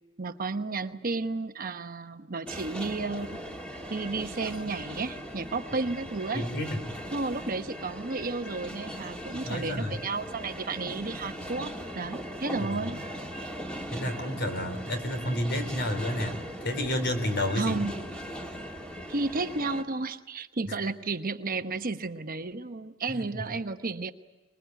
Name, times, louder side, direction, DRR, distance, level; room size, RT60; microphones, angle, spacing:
voice 1, 0.2-3.3 3.9-6.5 7.1-13.0 17.6-18.1 19.1-24.1, right 3 dB, 40° right, 8 dB, 1.0 m, -32 dB
sound 1, 2.5-19.8, equal, 5° left, 2.4 m, -39 dB
voice 2, 6.3-6.8 9.4-10.0 12.8-12.9 13.9-17.8 23.1-23.2, left 1 dB, 55° left, 7 dB, 3.8 m, -30 dB
25.0 x 22.0 x 9.2 m, 1.2 s
head